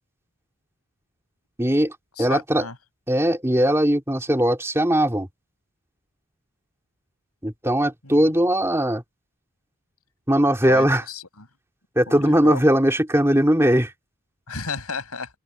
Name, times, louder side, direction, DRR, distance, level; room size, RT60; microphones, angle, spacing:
voice 1, 1.6-2.6 3.1-5.3 7.4-9.0 10.3-11.0 12.0-13.9, right 1 dB, 10° right, 3.0 m, -20 dB
voice 2, 2.2-2.7 8.0-8.3 10.6-11.5 12.1-12.6 14.5-15.3, left 4 dB, 85° left, 7.6 m, -33 dB
head